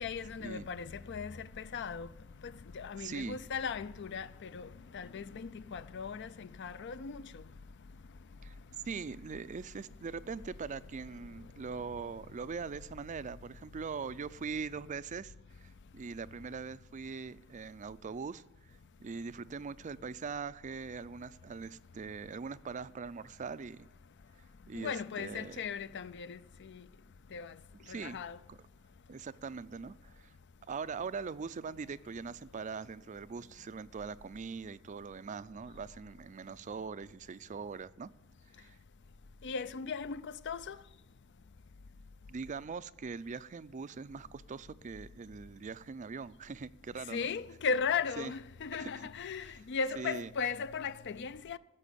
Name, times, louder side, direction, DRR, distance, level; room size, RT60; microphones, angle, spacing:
voice 1, 0.0-2.1 2.4-7.4 24.7-26.8 27.3-27.5 27.9-28.4 39.4-40.8 47.1-51.6, left 5 dB, 55° left, 0.5 m, -37 dB
voice 2, 3.0-3.4 8.4-8.6 8.9-23.9 24.7-25.6 27.8-28.2 28.5-28.6 29.1-30.3 30.7-38.1 38.6-38.7 42.3-47.3 48.2-48.3 48.8-48.9 50.0-50.3, right 5 dB, 35° right, 0.4 m, -42 dB
15.0 x 7.1 x 8.4 m
head